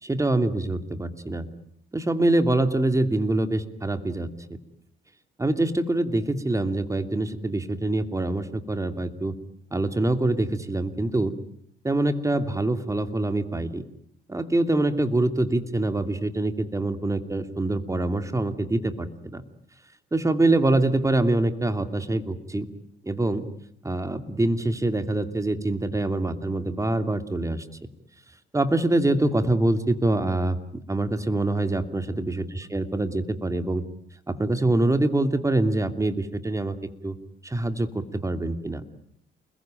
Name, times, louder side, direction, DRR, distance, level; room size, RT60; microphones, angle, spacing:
voice 1, 0.0-1.5 1.9-4.3 5.4-9.3 9.7-11.3 11.8-13.8 14.3-19.4 20.1-22.7 23.1-23.4 23.8-27.6 28.5-30.6 30.9-33.8 34.3-36.8 37.0-37.2 37.4-38.8, right 2 dB, 15° right, 9 dB, 2.7 m, -25 dB
29.0 x 21.0 x 9.0 m, 0.66 s
cardioid pair, 90°, 20 cm